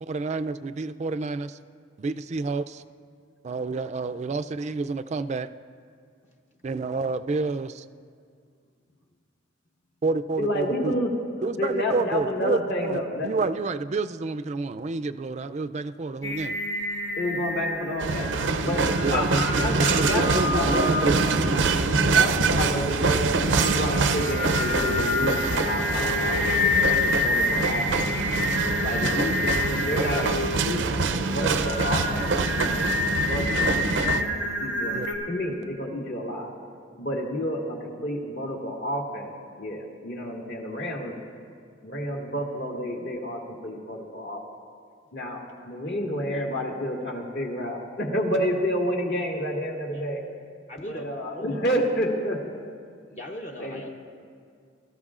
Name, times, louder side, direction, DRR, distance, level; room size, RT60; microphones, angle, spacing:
voice 1, 0.0-1.6 2.0-2.8 3.4-5.5 6.6-7.8 10.0-10.9 11.4-16.6 19.0-19.2 20.0-21.3 34.9-35.1, right 3 dB, 40° right, 11 dB, 0.3 m, -29 dB
voice 2, 10.4-11.1 11.4-13.3 17.2-18.3 18.6-21.2 22.0-28.0 28.8-30.8 31.3-35.0 35.3-36.5 37.0-39.3 39.6-41.1 41.8-44.4 45.1-50.2 50.9-52.4 53.6-53.8, equal, 60° left, -1 dB, 1.9 m, -30 dB
Singing, 16.2-35.1, left 2 dB, 90° left, 1.6 m, -29 dB
sound 1, 18.0-34.2, right 4 dB, 90° right, 0.6 m, -25 dB
voice 3, 50.7-51.6 53.1-53.9, equal, 40° left, 0 dB, 0.7 m, -39 dB
22.5 x 13.5 x 2.5 m, 2.1 s
head